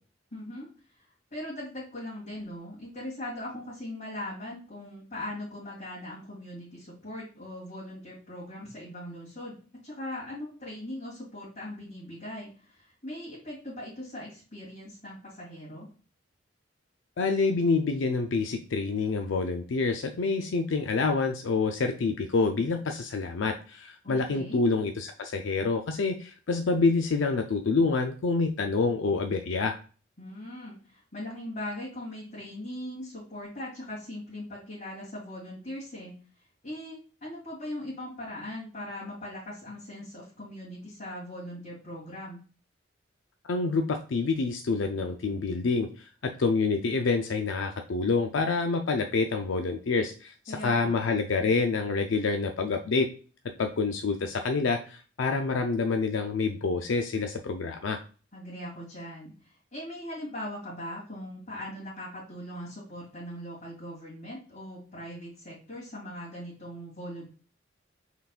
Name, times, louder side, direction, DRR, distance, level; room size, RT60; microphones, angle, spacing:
voice 1, 0.3-0.7 1.3-9.6 9.8-15.9 24.0-24.6 30.2-36.1 36.6-42.4 50.5-51.0 58.3-67.3, left 1 dB, 45° left, -9 dB, 2.2 m, -40 dB
voice 2, 17.2-29.8 43.4-53.1 53.6-58.0, left 4 dB, 80° left, 5 dB, 0.5 m, -27 dB
5.6 x 4.0 x 2.4 m, 0.38 s
head